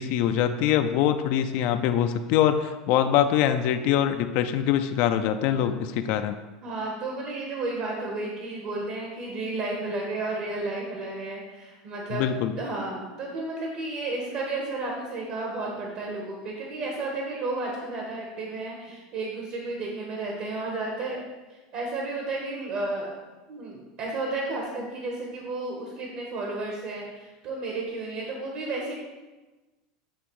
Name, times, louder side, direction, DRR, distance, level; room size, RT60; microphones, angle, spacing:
voice 1, 0.0-6.3 12.1-12.5, left 10 dB, 60° left, 9 dB, 0.4 m, -23 dB
voice 2, 5.3-5.9 6.6-12.2 12.6-21.2 21.5-23.1 23.5-28.9, right 2 dB, 55° right, -1 dB, 1.4 m, -32 dB
8.9 x 3.0 x 4.8 m, 1.2 s
supercardioid pair, 125°, 3 cm